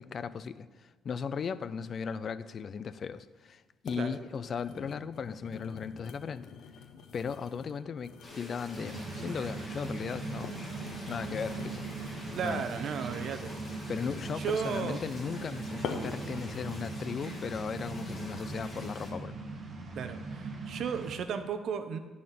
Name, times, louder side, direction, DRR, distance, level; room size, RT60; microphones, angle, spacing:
voice 1, 0.0-6.5 7.1-10.6 11.1-11.8 12.2-12.6 13.9-19.4, left 6 dB, 45° left, 15 dB, 0.4 m, -37 dB
sound 1, 3.1-3.2 3.9-4.1 4.4-9.6 10.2-15.1 15.8-16.3 16.8-17.0, left 6 dB, 75° left, 0.9 m, -46 dB
sound 2, 8.2-19.1, left 2 dB, 30° left, 2.1 m, -47 dB
sound 3, 8.7-21.2, right 3 dB, 40° right, 1.5 m, -40 dB
voice 2, 12.4-13.5 14.4-15.0 19.9-22.0, right 7 dB, 60° right, 9 dB, 0.8 m, -34 dB
10.5 x 4.3 x 7.5 m, 1.3 s
cardioid pair, 105°, 0 cm